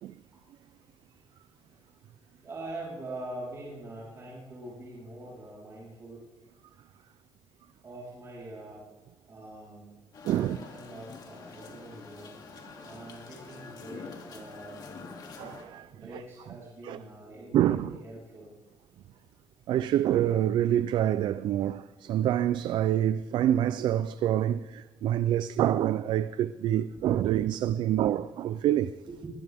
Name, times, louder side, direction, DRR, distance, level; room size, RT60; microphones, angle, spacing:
voice 1, 1.3-6.3 7.8-8.8 9.3-9.9 10.2-12.3 12.8-15.1 15.9-18.5 27.2-28.1 29.1-29.3, right 2 dB, 35° right, 4.1 m, -44 dB
sound 1, 10.1-15.6, left 4 dB, 55° left, 2.5 m, -46 dB
voice 2, 10.2-10.6 15.4-15.9 16.8-17.0 17.5-17.9 19.7-28.9, right 11 dB, 75° right, 0.4 m, -26 dB
21.5 x 19.0 x 3.5 m
cardioid pair, 145°, 8 cm